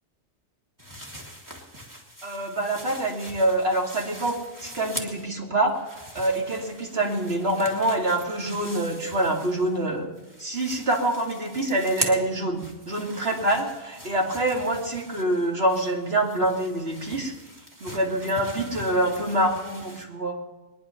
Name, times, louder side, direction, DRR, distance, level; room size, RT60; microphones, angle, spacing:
sound 1, 0.8-5.4 5.7-9.9 10.2-20.0, equal, 15° right, 2.2 m, -41 dB
voice 1, 2.2-10.1 10.4-17.3 17.8-20.4, right 1 dB, 60° right, 0 dB, 2.8 m, -26 dB
22.5 x 10.5 x 5.8 m, 1.2 s
omnidirectional pair, 1.2 m